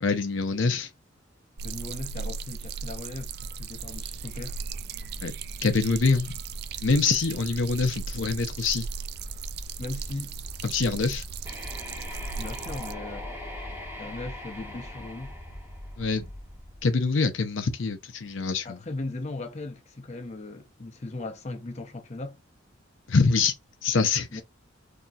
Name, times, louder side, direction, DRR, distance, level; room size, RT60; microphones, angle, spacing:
voice 1, 0.0-0.9 5.2-5.3 5.6-6.4 6.8-8.9 10.6-11.2 16.0-16.3 16.8-18.8 23.1-23.5 23.8-24.4, left 4 dB, 75° left, 0.6 m, -25 dB
voice 2, 1.6-3.3 3.6-4.6 9.8-10.4 12.4-13.3 14.0-15.4 18.6-22.4 24.3-24.4, left 2 dB, 35° left, 0.6 m, -38 dB
sound 1, 1.6-12.9, right 5 dB, 55° right, 0.3 m, -37 dB
sound 2, 3.1-16.8, equal, 70° right, 1.3 m, -44 dB
sound 3, 11.4-16.3, left 1 dB, 10° right, 1.7 m, -41 dB
4.0 x 2.8 x 2.3 m
head